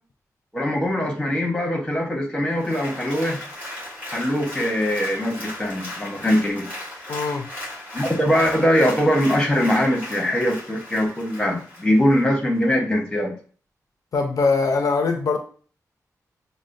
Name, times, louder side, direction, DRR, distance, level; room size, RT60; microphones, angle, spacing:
voice 1, 0.5-3.4 4.1-6.7 7.9-13.3, equal, 10° left, 0.9 m, -22 dB
Applause, 2.5-12.3 12.7-12.8, left 1 dB, 25° right, 1.6 m, -37 dB
voice 2, 7.1-7.5 14.1-15.4, left 4 dB, 60° left, 0.4 m, -22 dB
6.1 x 2.1 x 2.6 m
wide cardioid pair, 155°, 6 cm